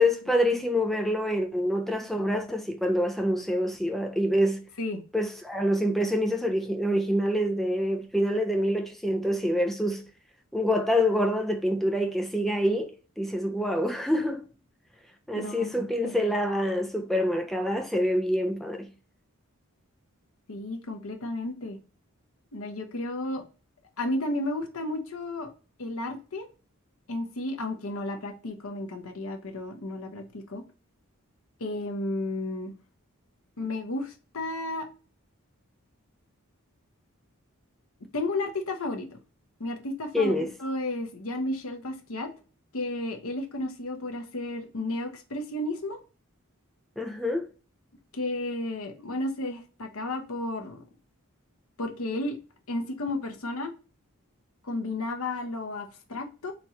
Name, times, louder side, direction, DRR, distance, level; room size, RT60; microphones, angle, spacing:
voice 1, 0.0-4.6 5.1-10.0 10.5-14.5 15.3-18.9 40.1-40.5 47.0-47.5, equal, ahead, 0.4 m, -26 dB
voice 2, 15.3-15.7 16.0-16.5 20.5-21.8 22.5-23.4 24.0-25.5 25.8-26.5 27.1-30.6 31.6-32.7 33.6-34.9 38.1-39.2 39.6-42.3 42.7-46.0 48.1-50.8 51.8-52.4 52.7-53.7 54.6-56.5, left 2 dB, 70° left, 0.9 m, -33 dB
4.2 x 3.1 x 2.8 m
head